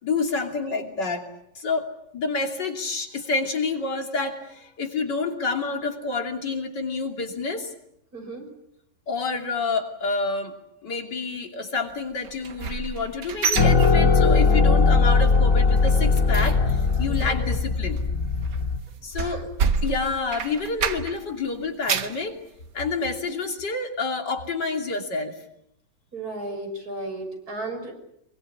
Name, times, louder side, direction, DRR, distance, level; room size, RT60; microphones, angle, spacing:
voice 1, 0.0-1.3 1.6-7.7 9.1-10.5 10.8-18.0 19.0-19.5 19.8-22.4 22.7-25.3, left 4 dB, 70° left, 4 dB, 3.5 m, -28 dB
voice 2, 8.1-8.5 17.1-17.3 19.1-19.4 26.1-27.9, right 2 dB, 55° right, 4 dB, 6.8 m, -34 dB
sound 1, 12.2-14.6 14.9-15.2 15.5-21.3 21.6-22.2 22.7-22.8 23.3-23.4, right 6 dB, 70° right, 1.9 m, -29 dB
sound 2, 13.6-18.8, left 4 dB, 45° left, 3.5 m, -19 dB
25.5 x 23.5 x 8.4 m, 0.78 s
omnidirectional pair, 1.9 m